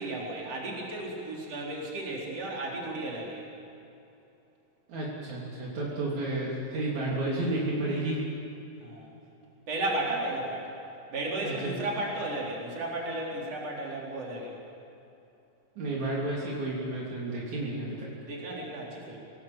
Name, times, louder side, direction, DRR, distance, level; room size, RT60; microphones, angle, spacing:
voice 1, 0.0-3.4 8.8-9.1 9.7-10.7 11.1-14.5 18.2-19.2, right 2 dB, 55° right, -3 dB, 5.1 m, -34 dB
voice 2, 4.9-8.2 11.4-11.7 15.8-18.1, right 2 dB, 75° right, -5 dB, 4.6 m, -31 dB
26.5 x 18.5 x 7.5 m, 2.8 s
omnidirectional pair, 3.3 m